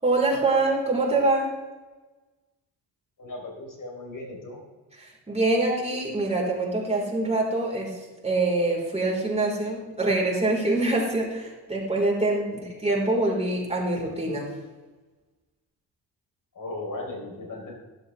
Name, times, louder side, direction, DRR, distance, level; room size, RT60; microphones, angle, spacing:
voice 1, 0.0-1.5 5.0-7.9 8.2-14.5, right 2 dB, 15° right, -3 dB, 4.5 m, -25 dB
voice 2, 3.2-4.6 12.4-12.6 16.5-17.7, left 2 dB, 50° left, 0 dB, 4.0 m, -37 dB
12.5 x 11.5 x 3.5 m, 1.2 s
cardioid pair, 70°, 42 cm